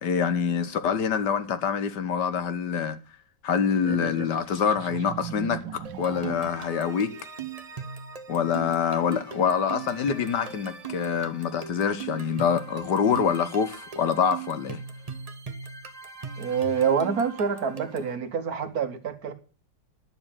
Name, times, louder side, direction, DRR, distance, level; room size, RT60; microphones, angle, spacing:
voice 1, 0.0-3.0 3.4-7.1 8.3-14.8, left 7 dB, 70° left, 1.7 m, -26 dB
sound 1, 3.8-6.9, right 10 dB, 85° right, 1.4 m, -38 dB
sound 2, 5.8-18.2, right 6 dB, 30° right, 0.7 m, -40 dB
voice 2, 16.4-19.3, right 6 dB, 60° right, 1.5 m, -26 dB
10.0 x 7.1 x 8.8 m
omnidirectional pair, 1.9 m